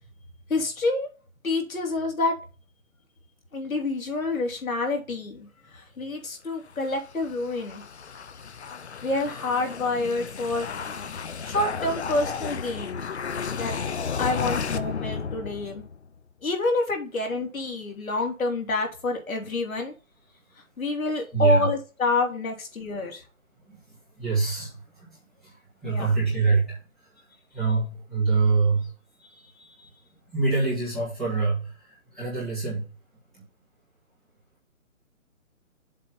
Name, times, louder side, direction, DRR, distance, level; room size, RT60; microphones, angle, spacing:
voice 1, 0.5-1.1 1.4-2.3 3.5-7.8 9.0-10.7 11.4-13.1 13.5-13.8 14.2-15.8 16.4-19.9 20.8-23.2 25.8-26.1 29.2-29.9, left 2 dB, 80° left, 2 dB, 3.2 m, -28 dB
sound 1, 6.7-16.1, left 6 dB, 55° left, 0.7 m, -33 dB
voice 2, 21.3-21.7 23.7-27.3 27.5-28.9 30.3-32.9 33.3-33.4, right 4 dB, ahead, -12 dB, 1.9 m, -26 dB
7.6 x 3.8 x 5.6 m, 0.33 s
hypercardioid pair, 175°, 41 cm